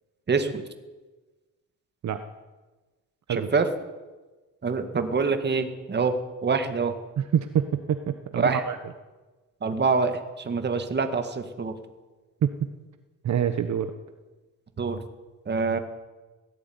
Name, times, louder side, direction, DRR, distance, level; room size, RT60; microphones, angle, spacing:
voice 1, 0.3-0.6 3.3-3.7 4.6-6.1 6.4-7.0 8.4-8.6 9.6-11.7 14.8-15.0 15.5-15.8, right 4 dB, 35° right, 7 dB, 2.1 m, -25 dB
voice 2, 7.2-8.8 12.4-12.5 13.2-13.9, right 9 dB, 60° right, 9 dB, 1.2 m, -26 dB
17.5 x 15.5 x 9.7 m, 1.2 s
cardioid pair, 135°, 32 cm